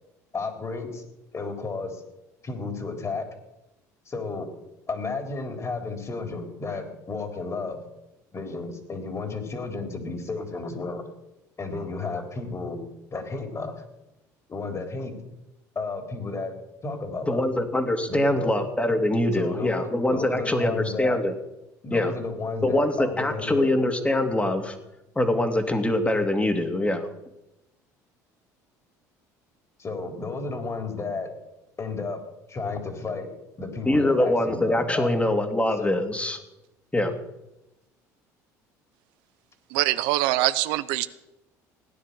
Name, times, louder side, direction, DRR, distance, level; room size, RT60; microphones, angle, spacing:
voice 1, 0.3-1.0 1.3-2.0 2.4-3.3 4.1-4.5 4.9-7.8 8.3-11.0 11.6-12.8 13.1-13.7 14.5-15.2 15.8-16.5 16.8-17.5 18.1-18.5 19.3-21.2 21.8-23.7 29.8-31.3 31.8-32.2 32.5-33.3 33.6-35.1 35.8-36.0, left 3 dB, 35° left, 5 dB, 3.8 m, -32 dB
voice 2, 17.3-21.3 21.9-22.1 22.6-24.8 25.2-27.1 33.9-36.4 36.9-37.1, left 1 dB, 15° left, 7 dB, 2.6 m, -24 dB
voice 3, 39.7-41.1, right 16 dB, 70° right, 14 dB, 0.7 m, -23 dB
17.5 x 10.0 x 6.9 m, 0.93 s
hypercardioid pair, 65°, 9 cm